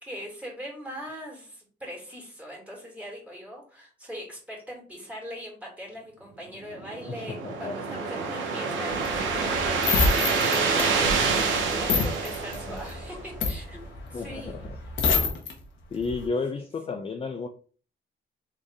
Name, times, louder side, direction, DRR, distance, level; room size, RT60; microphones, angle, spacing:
voice 1, 0.0-13.8 14.1-14.6 16.6-16.7, equal, 5° right, -1 dB, 2.3 m, -41 dB
sound 1, 6.7-13.3, right 4 dB, 80° right, 1.0 m, -27 dB
voice 2, 7.1-7.8 12.5-12.8 14.1-14.8 15.9-17.5, left 4 dB, 30° left, 6 dB, 0.5 m, -32 dB
sound 2, 8.9-15.5 15.9-16.3, left 4 dB, 75° left, 1.2 m, -27 dB
4.1 x 3.2 x 3.5 m, 0.42 s
cardioid pair, 90°, 20 cm